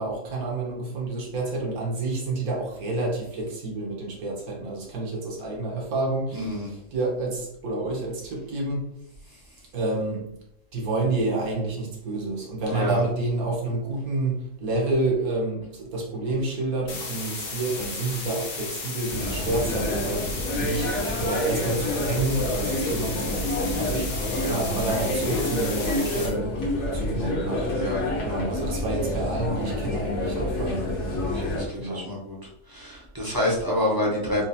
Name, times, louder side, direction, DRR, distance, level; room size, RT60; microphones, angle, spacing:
voice 1, 0.0-8.9 9.7-10.2 10.7-20.3 20.6-26.5 26.9-27.7 28.2-30.9 31.7-32.1, right 2 dB, 70° right, -2 dB, 1.4 m, -29 dB
voice 2, 6.3-6.7 12.7-13.0 24.4-24.6 27.8-28.1 31.3-32.4 32.7-34.4, left 1 dB, 25° right, -4 dB, 0.4 m, -27 dB
sound 1, 16.9-26.3, left 3 dB, 80° left, 1.4 m, -34 dB
sound 2, 19.1-31.6, left 1 dB, 55° left, 1.0 m, -28 dB
4.5 x 2.4 x 2.7 m, 0.78 s
omnidirectional pair, 1.6 m